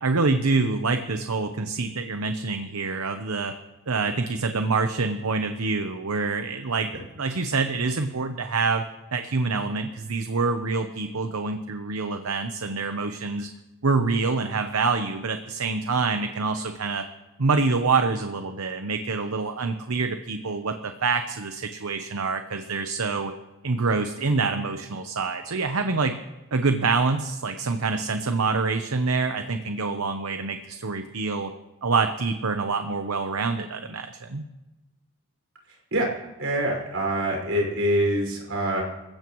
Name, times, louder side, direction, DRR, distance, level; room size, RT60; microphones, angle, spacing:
voice 1, 0.0-3.5 3.9-6.9 7.2-8.8 9.1-13.5 13.8-17.1 17.4-23.3 23.6-26.2 26.5-31.5 31.8-34.4, right 4 dB, 90° right, 7 dB, 0.9 m, -26 dB
voice 2, 36.4-38.8, right 1 dB, 75° right, -1 dB, 5.7 m, -25 dB
26.0 x 15.5 x 3.1 m, 1.1 s
head